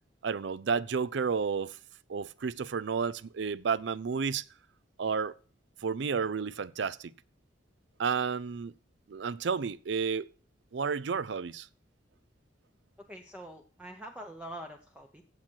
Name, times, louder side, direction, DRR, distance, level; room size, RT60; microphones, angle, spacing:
voice 1, 0.2-1.8 2.1-4.4 5.0-5.3 5.8-7.1 8.0-8.7 9.1-10.3 10.7-11.7, right 5 dB, 65° right, 0.4 m, -31 dB
voice 2, 13.1-15.2, right 1 dB, 5° right, 0.7 m, -44 dB
15.0 x 7.6 x 4.5 m
head